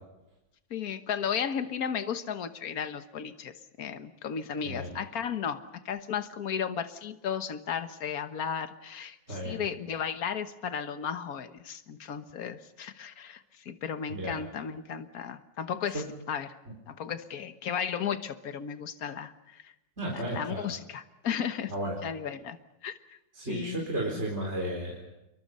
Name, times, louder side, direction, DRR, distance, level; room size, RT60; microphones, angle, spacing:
voice 1, 0.7-16.5 16.9-19.7 20.1-21.7 22.0-22.6 22.8-23.2 23.5-24.2, left 7 dB, 55° left, 10 dB, 1.6 m, -35 dB
voice 2, 9.3-9.6 14.1-14.3 15.9-16.0 20.0-20.6 21.7-22.0 23.3-25.1, right 1 dB, 35° right, -2 dB, 4.6 m, -33 dB
28.0 x 23.5 x 5.5 m, 0.93 s
omnidirectional pair, 2.0 m